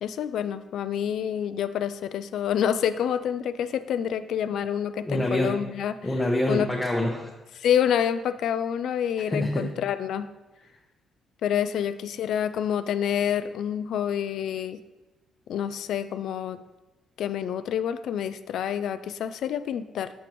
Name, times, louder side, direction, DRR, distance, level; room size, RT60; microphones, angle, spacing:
voice 1, 0.0-5.9 6.5-6.7 7.6-10.3 11.4-14.8 15.5-16.6 17.2-20.1, left 9 dB, 75° left, 12 dB, 0.3 m, -27 dB
voice 2, 5.0-5.5 6.0-7.3 9.3-9.7, left 1 dB, 15° left, -3 dB, 0.8 m, -26 dB
7.2 x 5.1 x 3.0 m, 1.1 s
cardioid pair, 90°, 0 cm